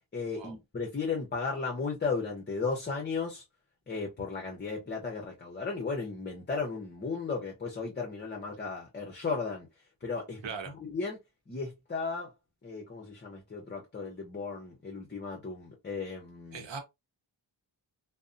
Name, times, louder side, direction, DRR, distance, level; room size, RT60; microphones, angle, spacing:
voice 1, 0.1-3.4 3.9-9.7 10.0-10.4 10.8-11.2 11.5-12.3 12.6-16.7, left 4 dB, 25° left, 0.5 m, -35 dB
voice 2, 10.4-10.7 16.5-16.8, right 5 dB, 70° right, 0.8 m, -39 dB
2.6 x 2.0 x 2.4 m
wide cardioid pair, 120°, 47 cm